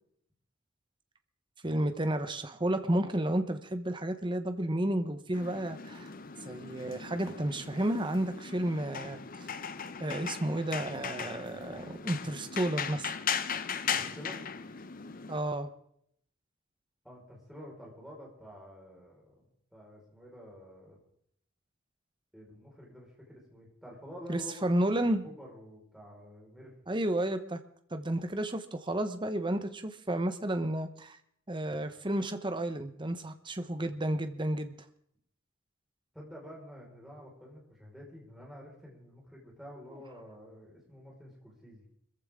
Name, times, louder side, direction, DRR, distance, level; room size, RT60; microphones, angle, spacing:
voice 1, 1.6-6.1 6.4-9.2 10.0-13.2 15.3-15.7 24.3-25.2 26.9-27.6 27.9-31.2 31.5-34.8, right 1 dB, 25° right, 8 dB, 1.0 m, -32 dB
sound 1, 5.3-15.4, left 7 dB, 45° left, 0.8 m, -38 dB
voice 2, 13.9-14.4 17.0-19.5 19.7-21.0 22.3-24.7 25.0-26.7 36.1-41.8, equal, ahead, -4 dB, 5.1 m, -49 dB
24.0 x 14.5 x 3.7 m, 0.69 s
head